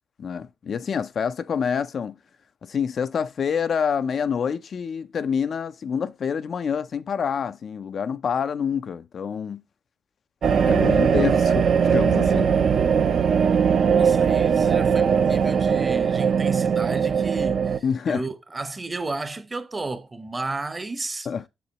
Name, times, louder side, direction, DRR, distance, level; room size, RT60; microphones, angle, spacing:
voice 1, 0.2-2.2 2.6-9.6 10.7-12.5 17.8-18.2 21.3-21.4, left 7 dB, 50° left, 0.4 m, -27 dB
sound 1, 10.4-17.8, right 6 dB, 55° right, 0.6 m, -20 dB
voice 2, 13.9-21.3, right 3 dB, 25° right, 0.9 m, -33 dB
7.0 x 6.7 x 2.9 m
cardioid pair, 90°, 0 cm